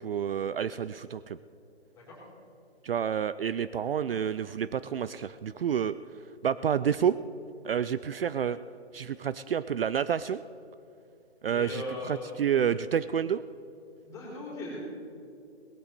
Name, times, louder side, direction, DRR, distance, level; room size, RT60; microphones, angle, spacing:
voice 1, 0.0-1.4 2.8-6.0 6.4-7.2 7.6-8.6 8.9-10.4 11.4-13.4, right 8 dB, 60° right, 15 dB, 0.5 m, -29 dB
voice 2, 11.5-12.3 14.1-14.8, left 2 dB, 10° left, -6 dB, 4.3 m, -38 dB
19.0 x 13.5 x 4.3 m, 2.6 s
hypercardioid pair, 155°, 33 cm